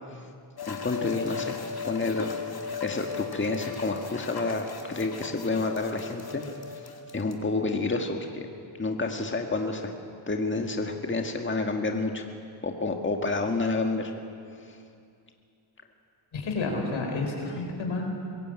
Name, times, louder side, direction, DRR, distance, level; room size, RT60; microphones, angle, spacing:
sound 1, 0.6-7.3, left 6 dB, 50° left, 2.5 m, -37 dB
voice 1, 0.7-1.6 1.8-2.3 2.8-6.4 7.1-8.5 8.8-9.9 10.3-12.2 12.6-14.1 14.6-14.8 17.4-17.6, left 3 dB, 25° left, 3 dB, 1.8 m, -29 dB
voice 2, 16.3-18.1, left 3 dB, 80° left, 2 dB, 4.4 m, -30 dB
23.0 x 15.5 x 8.9 m, 2.4 s
cardioid pair, 70°, 47 cm